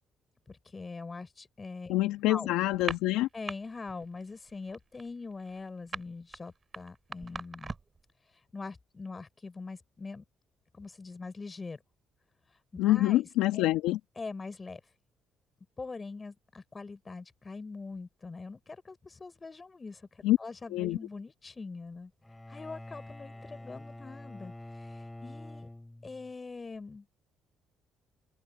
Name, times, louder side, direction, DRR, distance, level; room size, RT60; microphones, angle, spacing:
voice 1, 0.5-1.9 2.3-2.5 3.3-7.8 8.5-10.2 10.7-11.8 12.8-13.2 13.5-13.7 14.2-14.8 15.8-22.1 22.5-25.7 26.0-27.1, left 4 dB, 30° left, 4.7 m, -43 dB
voice 2, 1.9-3.3 12.8-14.0 20.2-20.4 20.7-21.0, left 16 dB, 85° left, 2.0 m, -26 dB
sound 1, 2.7-3.6 3.9-4.2 4.5-8.0, right 4 dB, 30° right, 4.5 m, -40 dB
Bowed string instrument, 22.2-26.3, left 1 dB, 10° left, 5.7 m, -46 dB
supercardioid pair, 75°, 0 cm